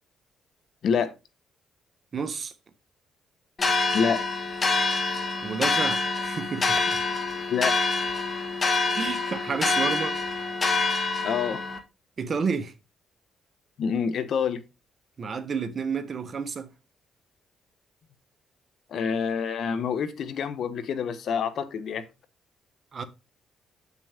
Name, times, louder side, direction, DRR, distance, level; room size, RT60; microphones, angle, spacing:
voice 1, 0.8-1.1 3.9-4.2 7.5-7.7 11.2-11.6 13.8-14.6 18.9-22.0, left 6 dB, 65° left, 1.2 m, -27 dB
voice 2, 2.1-2.5 5.4-7.0 8.9-10.2 12.2-12.7 15.2-16.7 22.9-23.0, right 5 dB, 45° right, 1.3 m, -30 dB
sound 1, 3.6-11.8, left 3 dB, 35° left, 1.7 m, -26 dB
8.5 x 6.1 x 3.6 m
cardioid pair, 90°, 0 cm